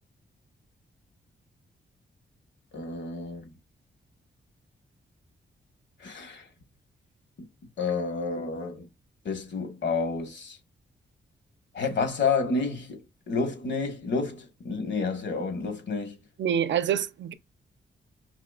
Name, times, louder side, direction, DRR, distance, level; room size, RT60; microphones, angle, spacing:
voice 1, 2.7-3.5 6.0-6.5 7.4-7.5 7.8-8.9 9.2-10.6 11.7-16.2, left 4 dB, 70° left, 1.4 m, -30 dB
voice 2, 16.4-17.3, right 9 dB, 70° right, 0.5 m, -26 dB
4.9 x 2.9 x 2.4 m
cardioid pair, 80°, 19 cm